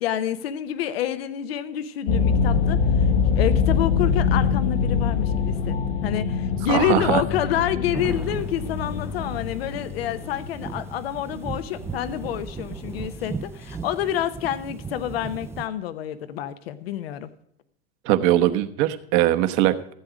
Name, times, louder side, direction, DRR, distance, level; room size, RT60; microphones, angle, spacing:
voice 1, 0.0-3.1 3.4-5.8 6.0-17.3, left 11 dB, 85° left, 13 dB, 1.0 m, -28 dB
sound 1, 2.1-13.1, left 6 dB, 70° left, 1.2 m, -24 dB
voice 2, 6.7-7.2 18.0-19.9, right 14 dB, 60° right, 9 dB, 1.1 m, -21 dB
sound 2, 7.9-15.7, right 5 dB, 10° right, 0.4 m, -36 dB
14.5 x 8.0 x 5.0 m, 0.72 s
supercardioid pair, 135°, 29 cm